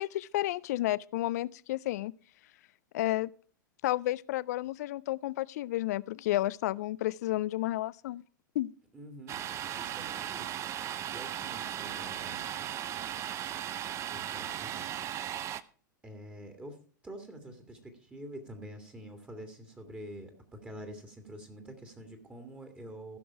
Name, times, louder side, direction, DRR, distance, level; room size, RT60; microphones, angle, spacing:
voice 1, 0.0-2.1 2.9-3.3 3.8-8.2 8.6-8.7, left 16 dB, 55° left, 0.4 m, -31 dB
voice 2, 8.9-10.6 11.1-12.6 14.1-14.9 16.0-16.8 17.0-23.2, right 1 dB, 15° right, 2.0 m, -47 dB
Domestic sounds home sounds, 9.3-15.6, right 11 dB, 30° right, 0.5 m, -37 dB
15.5 x 6.2 x 4.6 m
figure-of-eight pair, 100°, 10 cm